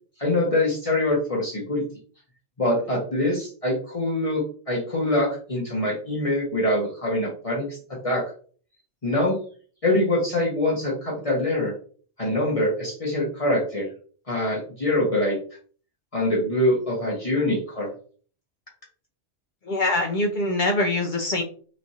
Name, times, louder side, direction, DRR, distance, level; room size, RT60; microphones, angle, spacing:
voice 1, 0.2-1.8 2.6-8.3 9.0-9.4 9.8-11.7 12.2-13.9 14.3-15.4 16.1-17.9, left 1 dB, 35° left, -4 dB, 0.8 m, -24 dB
voice 2, 19.6-21.4, left 2 dB, 60° left, 1 dB, 0.5 m, -23 dB
3.0 x 2.4 x 2.7 m, 0.43 s
omnidirectional pair, 1.3 m